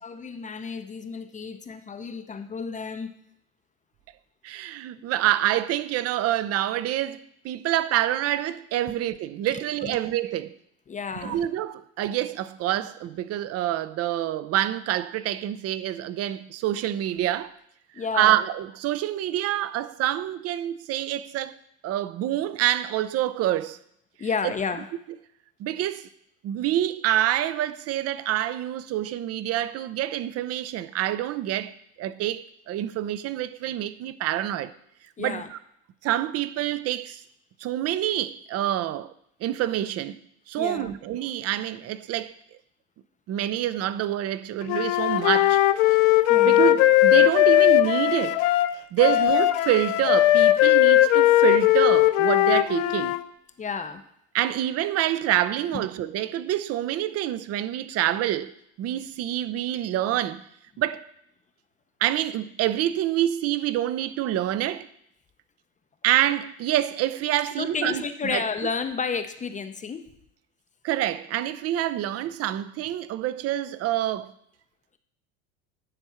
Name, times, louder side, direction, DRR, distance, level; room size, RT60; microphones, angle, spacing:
voice 1, 0.0-3.1 9.5-10.0 10.9-11.4 17.9-18.4 24.2-24.9 35.2-35.5 40.6-40.9 46.3-46.6 49.1-49.3 53.6-54.0 55.7-55.8 67.6-70.1, left 5 dB, 20° left, 0.5 m, -31 dB
voice 2, 4.4-10.6 11.2-17.5 18.1-21.6 21.8-23.8 24.4-24.5 25.6-26.1 26.4-34.7 35.2-35.6 36.0-37.2 37.6-39.1 39.4-40.2 40.5-42.4 43.3-45.6 45.9-46.0 46.4-48.4 48.9-53.2 54.3-58.5 58.8-60.4 60.8-61.1 62.0-64.9 66.0-68.4 70.8-74.3, right 13 dB, 40° right, 0.5 m, -27 dB
Wind instrument woodwind instrument, 44.7-53.2, left 15 dB, 75° left, 0.6 m, -19 dB
10.0 x 3.5 x 5.7 m
supercardioid pair, 95°, 38 cm